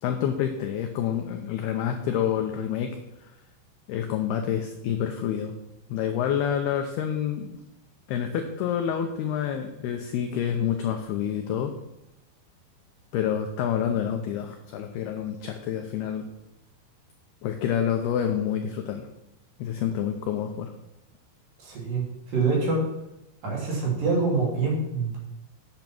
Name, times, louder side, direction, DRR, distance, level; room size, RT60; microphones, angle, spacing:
voice 1, 0.0-3.0 3.9-5.5 5.9-7.6 8.1-11.7 13.1-16.2 17.4-19.1 19.6-20.7, left 9 dB, 90° left, 4 dB, 2.2 m, -28 dB
voice 2, 21.6-22.9 23.4-25.2, right 3 dB, 50° right, -3 dB, 4.2 m, -25 dB
8.9 x 8.3 x 6.0 m, 0.90 s
omnidirectional pair, 5.6 m